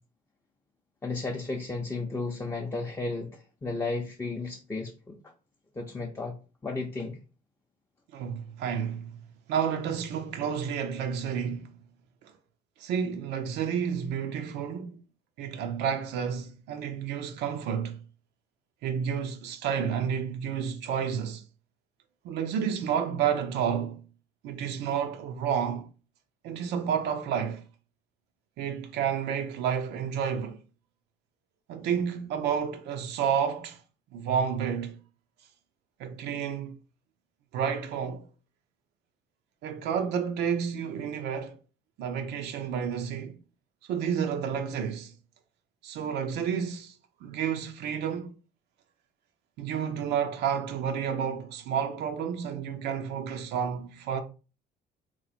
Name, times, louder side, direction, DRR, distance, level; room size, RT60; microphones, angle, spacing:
voice 1, 1.0-5.2 5.8-6.3 6.6-7.2, left 3 dB, 15° left, 0.5 m, -33 dB
voice 2, 8.1-9.1 9.5-11.7 12.2-12.3 12.8-15.0 15.4-18.0 18.8-21.4 22.2-24.0 24.4-25.9 26.4-27.6 28.6-30.6 31.7-33.8 34.1-35.0 36.0-36.8 37.5-38.3 39.6-41.6 42.0-43.3 43.9-45.1 45.8-48.3 49.6-54.2, right 7 dB, 85° right, 0.5 m, -30 dB
3.0 x 2.1 x 4.1 m
cardioid pair, 110°, 17 cm